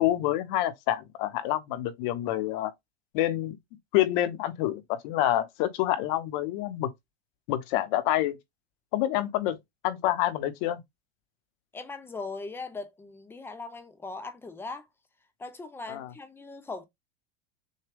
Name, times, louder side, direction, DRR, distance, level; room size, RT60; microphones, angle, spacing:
voice 1, 0.0-2.7 3.1-3.6 3.9-6.9 7.5-8.4 8.9-9.6 9.8-10.8 15.9-16.1, left 14 dB, 50° left, 0.9 m, -27 dB
voice 2, 11.7-14.9 15.4-16.9, left 3 dB, 5° left, 0.4 m, -39 dB
6.5 x 2.3 x 3.4 m
supercardioid pair, 150°, 32 cm